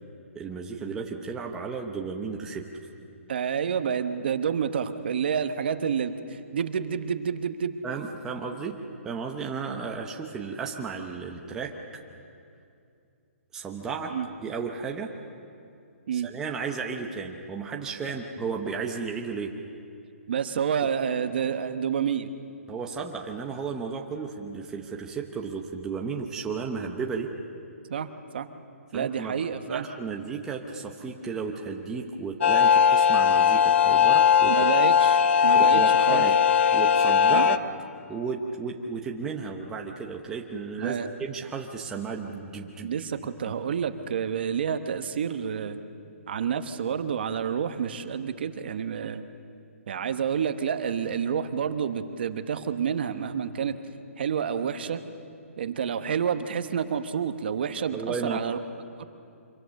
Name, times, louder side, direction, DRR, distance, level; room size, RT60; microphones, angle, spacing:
voice 1, 0.3-2.6 7.8-8.8 9.0-11.7 13.5-14.1 14.4-15.1 16.1-19.5 22.7-27.3 28.9-29.3 29.7-34.7 35.5-36.4 36.7-37.6 38.1-42.9 57.9-58.4, right 5 dB, 5° right, 0 dB, 0.8 m, -34 dB
voice 2, 3.3-7.7 14.1-14.3 16.1-16.3 20.3-22.3 27.9-28.5 28.9-29.9 34.4-36.2 37.3-37.5 40.8-41.1 42.8-45.8 46.3-49.2 49.9-53.8 54.2-55.0 55.6-58.6 59.0-59.1, right 7 dB, 45° right, 9 dB, 1.0 m, -29 dB
sound 1, 32.4-37.6, left 7 dB, 55° left, 0.7 m, -19 dB
25.5 x 23.0 x 6.5 m, 2.5 s
hypercardioid pair, 170°, 8 cm